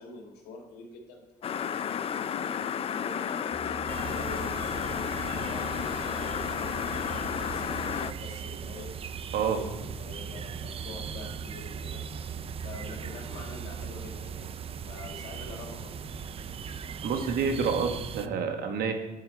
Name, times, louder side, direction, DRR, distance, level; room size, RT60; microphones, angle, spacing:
voice 1, 0.0-2.5 2.9-6.6 7.2-8.9 9.4-12.0 12.6-14.5 14.9-16.0, left 3 dB, 75° left, 0 dB, 2.2 m, -45 dB
sound 1, 1.4-8.1, left 8 dB, 35° left, 0.4 m, -32 dB
sound 2, 3.5-18.1, right 6 dB, 15° left, 0.9 m, -43 dB
sound 3, 3.9-18.3, right 7 dB, 35° right, 0.4 m, -40 dB
voice 2, 17.0-18.9, right 6 dB, 60° right, 5 dB, 1.2 m, -28 dB
11.0 x 4.7 x 4.5 m, 1.1 s
cardioid pair, 110°, 17 cm